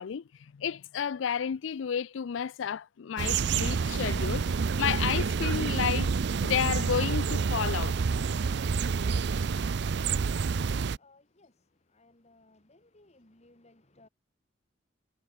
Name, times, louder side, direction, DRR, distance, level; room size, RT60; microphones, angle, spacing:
voice 1, 0.0-4.4 4.8-6.1 6.4-8.0, left 8 dB, 80° left, 0.4 m, -31 dB
sound 1, 3.2-11.0, right 5 dB, 60° right, 0.5 m, -28 dB
voice 2, 11.0-11.5 11.9-14.1, left 2 dB, 35° left, 2.9 m, -60 dB
head